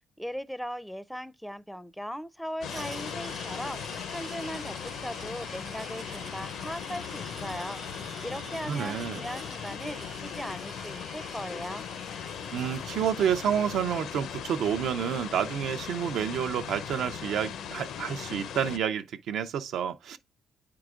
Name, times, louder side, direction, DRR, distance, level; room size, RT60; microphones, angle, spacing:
voice 1, 0.2-3.8 4.1-7.8 8.2-11.8, equal, ahead, 0.4 m, -38 dB
sound 1, 2.6-18.8, left 8 dB, 75° left, 0.6 m, -38 dB
sound 2, 2.7-13.5, right 5 dB, 45° right, 0.7 m, -47 dB
voice 2, 8.7-9.2 12.5-20.2, right 8 dB, 75° right, 0.5 m, -29 dB
8.9 x 4.7 x 2.4 m
cardioid pair, 90°, 0 cm